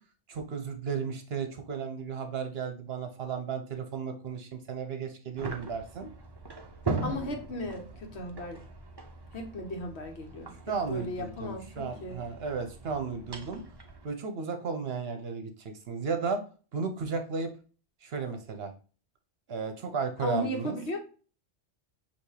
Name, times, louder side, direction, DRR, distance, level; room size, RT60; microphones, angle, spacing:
voice 1, 0.3-6.1 10.7-13.6 14.0-16.4 16.7-17.5 18.0-18.7 19.5-20.8, right 5 dB, 60° right, 1.0 m, -34 dB
sound 1, 5.4-14.1, right 3 dB, 30° right, 0.5 m, -40 dB
voice 2, 7.0-8.6 9.3-10.5 10.9-12.2 20.2-21.0, left 1 dB, 70° left, 1.3 m, -36 dB
6.3 x 2.9 x 2.8 m
omnidirectional pair, 1.2 m